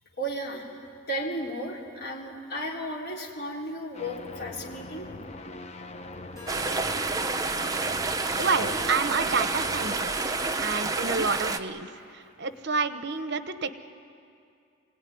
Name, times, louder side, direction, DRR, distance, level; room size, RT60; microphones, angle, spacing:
voice 1, 0.2-0.7 1.1-5.1, equal, 55° left, -2 dB, 3.8 m, -34 dB
sound 1, 3.9-10.0, left 2 dB, 35° left, 1.0 m, -41 dB
Harp, 6.3-11.4, left 2 dB, 15° left, 4.8 m, -46 dB
sound 2, 6.5-11.6, right 3 dB, 20° right, 0.8 m, -29 dB
voice 2, 8.4-13.7, right 4 dB, 60° right, 10 dB, 1.0 m, -29 dB
26.5 x 17.5 x 9.6 m, 2.4 s
head